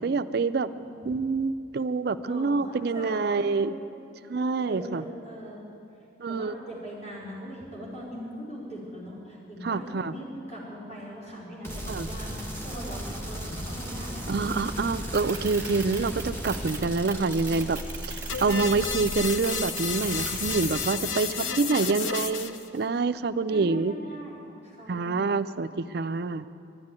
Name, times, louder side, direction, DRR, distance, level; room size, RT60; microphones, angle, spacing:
voice 1, 0.0-0.7 1.0-3.8 4.3-5.0 6.2-6.5 9.6-10.1 11.9-12.1 14.3-17.8 18.0-21.3 21.6-23.9 24.9-26.5, right 4 dB, 55° right, 12 dB, 0.4 m, -26 dB
voice 2, 0.6-1.2 2.3-3.9 4.7-5.6 6.3-14.3 21.2-21.8 23.5-25.3, equal, 35° left, -6 dB, 4.4 m, -41 dB
sound 1, 11.6-19.6 19.9-20.8, equal, 10° left, 1.6 m, -36 dB
sound 2, 15.1-20.7, right 5 dB, 15° right, 1.2 m, -38 dB
sound 3, 18.3-22.7, left 6 dB, 80° left, 0.7 m, -32 dB
11.5 x 11.0 x 9.7 m, 2.6 s
head